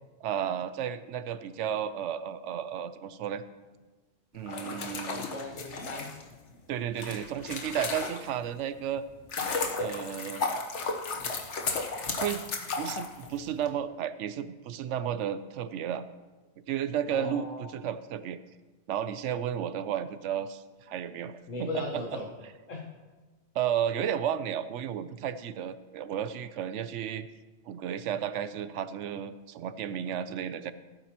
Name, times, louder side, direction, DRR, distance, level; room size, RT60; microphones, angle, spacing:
voice 1, 0.2-3.4 4.3-5.3 6.7-9.0 9.8-10.4 12.2-12.4 12.8-16.0 16.7-18.4 18.9-22.0 23.5-27.3 27.7-30.7, right 9 dB, 75° right, 13 dB, 0.9 m, -33 dB
sound 1, 4.4-8.5 9.0-13.7, left 4 dB, 70° left, 1.4 m, -34 dB
voice 2, 5.0-6.2 17.1-17.7 21.5-22.3 22.7-22.9, left 2 dB, 90° left, -3 dB, 1.7 m, -38 dB
16.0 x 9.2 x 2.9 m, 1.2 s
omnidirectional pair, 1.3 m